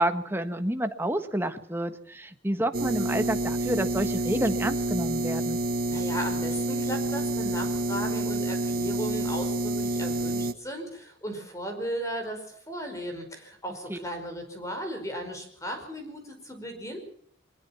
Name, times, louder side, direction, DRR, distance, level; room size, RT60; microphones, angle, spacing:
voice 1, 0.0-5.6 13.9-14.0, right 1 dB, 10° right, 7 dB, 1.4 m, -29 dB
sound 1, 2.7-10.5, right 1 dB, 45° right, 1.2 m, -28 dB
voice 2, 5.9-17.0, equal, 15° left, 5 dB, 5.2 m, -36 dB
22.5 x 20.5 x 6.0 m, 0.66 s
head